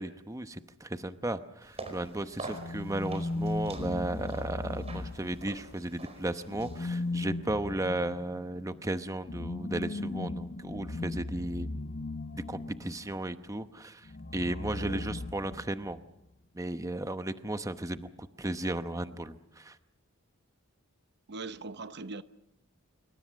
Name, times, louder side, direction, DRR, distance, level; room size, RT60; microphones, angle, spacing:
voice 1, 0.0-11.7 12.3-14.1 14.3-16.0 16.5-19.8, right 1 dB, 15° right, 0.9 m, -35 dB
sound 1, 1.6-7.2, right 2 dB, 30° right, 5.0 m, -46 dB
sound 2, 2.5-5.8 6.5-13.1 14.1-16.0, left 2 dB, 50° left, 0.9 m, -37 dB
voice 2, 14.8-15.1 21.3-22.2, right 3 dB, 55° right, 0.9 m, -40 dB
26.5 x 24.0 x 6.4 m
head